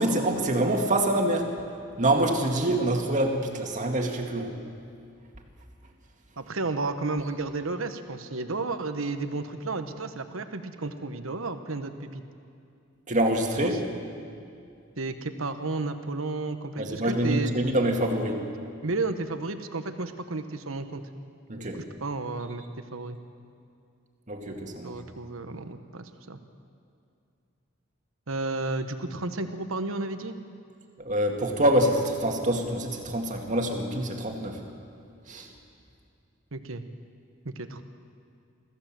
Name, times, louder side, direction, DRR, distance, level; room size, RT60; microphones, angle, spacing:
voice 1, 0.0-1.5 2.0-4.5 13.1-13.8 16.8-18.4 21.5-21.8 24.3-24.9 31.0-34.6 35.3-35.5, right 1 dB, 40° right, 2 dB, 2.2 m, -25 dB
voice 2, 6.4-12.2 13.6-13.8 15.0-17.6 18.8-21.0 21.6-21.7 22.0-22.6 22.9-23.2 24.8-26.4 28.3-30.3 36.5-36.8 37.4-37.8, right 3 dB, 75° right, 9 dB, 1.2 m, -32 dB
24.5 x 15.5 x 7.6 m, 2.5 s
head